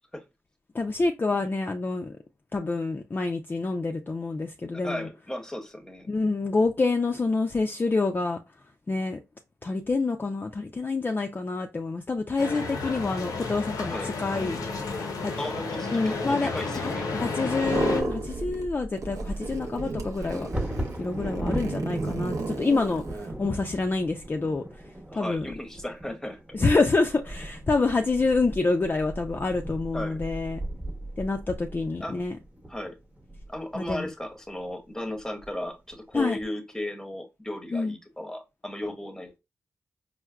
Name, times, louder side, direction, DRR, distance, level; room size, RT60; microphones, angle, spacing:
voice 1, 0.7-2.2 2.5-5.1 6.1-8.4 8.9-9.2 9.6-14.6 15.2-15.3 15.9-20.5 21.0-24.6 25.1-25.5 26.5-30.6 31.2-32.4 33.8-34.1 36.1-36.4 37.7-37.9, left 3 dB, 35° left, 0.4 m, -27 dB
voice 2, 4.8-6.1 13.8-14.1 15.4-17.1 25.1-26.4 29.9-30.2 31.8-32.2 32.7-33.0 33.5-39.4, left 1 dB, 10° left, 0.8 m, -35 dB
sound 1, 12.4-18.0, left 3 dB, 90° left, 0.6 m, -32 dB
sound 2, 17.5-18.7 19.0-23.3, right 3 dB, 70° right, 0.6 m, -33 dB
Bird vocalization bird call bird song / Wind / Thunder, 18.1-34.0 34.6-34.7 35.1-35.5 35.9-36.4, right 1 dB, 20° right, 0.9 m, -38 dB
4.4 x 2.0 x 2.3 m
cardioid pair, 50°, 6 cm